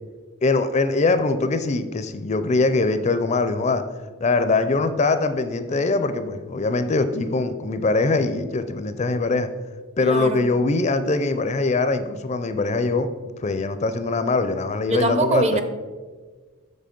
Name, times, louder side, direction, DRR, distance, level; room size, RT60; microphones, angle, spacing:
voice 1, 0.4-3.8 4.2-9.5 10.0-13.1 13.4-15.6, left 3 dB, 30° left, 10 dB, 0.4 m, -22 dB
voice 2, 10.0-10.5 14.9-15.6, right 2 dB, 30° right, 9 dB, 0.6 m, -22 dB
7.5 x 6.3 x 5.1 m, 1.4 s
head